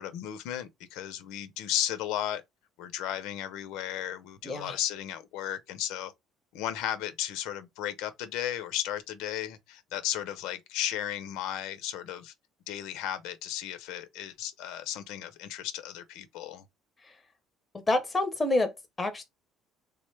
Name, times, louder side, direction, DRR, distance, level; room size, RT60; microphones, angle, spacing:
voice 1, 0.0-2.4 2.8-6.1 6.5-12.3 12.7-16.6, left 11 dB, 75° left, 0.5 m, -34 dB
voice 2, 4.5-4.8 17.9-18.7 19.0-19.2, left 2 dB, 10° left, 0.6 m, -27 dB
3.5 x 2.1 x 3.2 m
cardioid pair, 170°, 0 cm